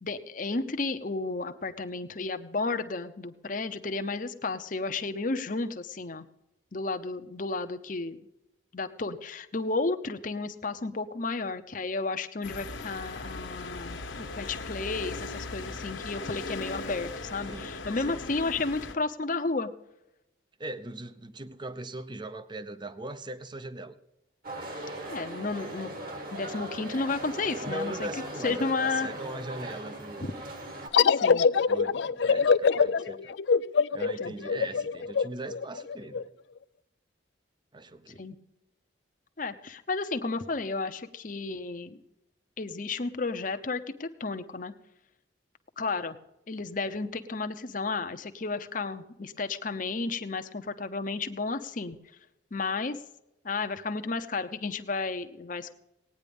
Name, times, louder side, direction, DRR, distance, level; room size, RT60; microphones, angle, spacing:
voice 1, 0.0-6.2 6.7-8.2 8.7-19.7 25.1-26.0 26.3-28.1 28.4-29.1 30.2-30.3 31.1-31.5 34.2-34.3 38.1-38.4 39.4-42.0 42.6-44.7 45.8-46.2 46.5-52.0 52.5-53.0 53.4-55.7, left 3 dB, 45° left, 8 dB, 0.8 m, -32 dB
sound 1, 12.4-18.9, left 3 dB, 80° left, 1.4 m, -39 dB
voice 2, 17.5-18.2 20.6-24.0 27.6-30.2 31.6-33.4 33.9-36.3 37.7-38.2, right 1 dB, 25° right, 12 dB, 0.7 m, -40 dB
sound 2, 24.4-30.9, right 1 dB, 50° right, 2.1 m, -39 dB
sound 3, 30.9-36.2, left 5 dB, 65° left, 0.4 m, -24 dB
17.5 x 9.6 x 5.3 m, 0.91 s
head